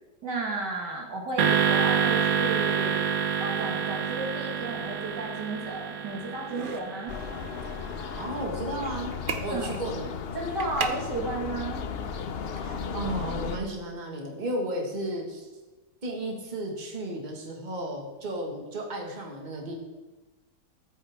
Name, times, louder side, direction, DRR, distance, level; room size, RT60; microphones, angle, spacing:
voice 1, 0.2-3.1 3.4-7.1 9.5-9.7 10.3-11.8, right 2 dB, 80° right, 0 dB, 2.6 m, -33 dB
sound 1, 1.4-7.8, right 7 dB, 65° right, 1.2 m, -27 dB
sound 2, 4.5-13.3, right 5 dB, 45° right, 0.7 m, -41 dB
sound 3, 7.1-13.6, left 6 dB, 60° left, 0.6 m, -35 dB
voice 2, 8.2-9.2 9.4-10.1 12.6-15.5 16.0-19.7, right 1 dB, 25° right, 0 dB, 1.9 m, -33 dB
14.0 x 8.4 x 3.6 m, 1.2 s
omnidirectional pair, 1.8 m